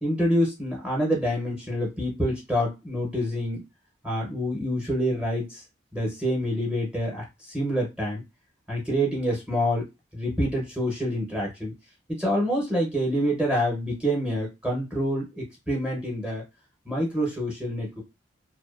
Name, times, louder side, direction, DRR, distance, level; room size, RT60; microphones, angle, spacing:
voice 1, 0.0-3.6 4.0-5.6 5.9-8.2 8.7-9.9 10.1-11.7 12.2-16.4 16.9-18.0, equal, 5° right, -1 dB, 0.6 m, -27 dB
2.6 x 2.2 x 2.3 m, 0.24 s
head